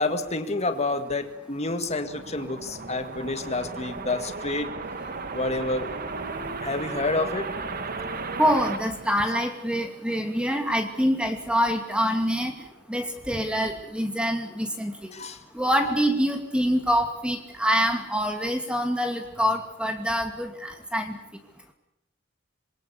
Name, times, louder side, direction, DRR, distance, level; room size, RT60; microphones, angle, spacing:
voice 1, 0.0-4.7 5.3-5.9 6.6-7.5 15.1-15.4, left 2 dB, 35° left, 7 dB, 1.9 m, -28 dB
sound 1, 1.6-9.9, right 4 dB, 50° right, 1.8 m, -35 dB
voice 2, 8.4-15.1 15.5-21.2, equal, 5° right, 4 dB, 2.6 m, -25 dB
27.0 x 23.0 x 7.0 m, 0.80 s
head